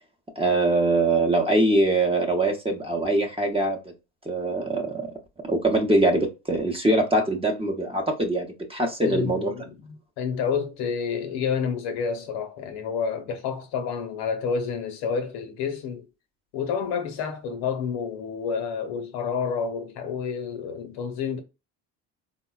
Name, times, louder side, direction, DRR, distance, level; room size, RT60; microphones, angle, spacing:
voice 1, 0.4-3.8 4.3-5.1 5.5-9.5, right 2 dB, 15° right, 0.7 m, -23 dB
voice 2, 9.0-16.1 16.5-21.4, left 6 dB, 75° left, 0.8 m, -29 dB
3.8 x 2.1 x 2.3 m
supercardioid pair, 90°, 39 cm